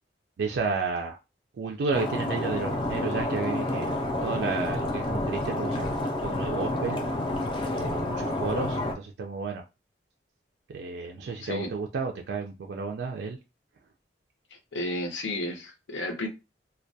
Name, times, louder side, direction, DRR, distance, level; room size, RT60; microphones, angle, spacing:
voice 1, 0.4-1.2 1.5-7.0 7.7-9.6 10.7-13.4, right 4 dB, 65° right, 0.3 m, -32 dB
Stream, 1.9-8.9, left 1 dB, 25° left, 0.4 m, -29 dB
voice 2, 14.5-16.3, left 1 dB, 80° left, 0.6 m, -32 dB
2.2 x 2.1 x 2.6 m
head